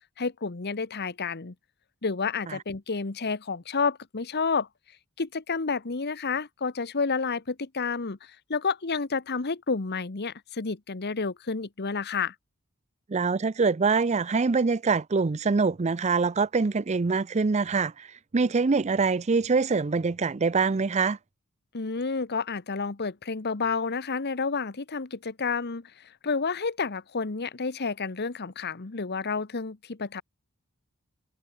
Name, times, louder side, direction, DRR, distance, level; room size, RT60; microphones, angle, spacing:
voice 1, 0.2-1.5 2.0-4.7 5.2-12.3 21.7-25.9 26.2-30.2, left 4 dB, 50° left, 1.0 m, -30 dB
voice 2, 13.1-18.1 18.3-21.2, right 4 dB, 30° right, 0.5 m, -24 dB
head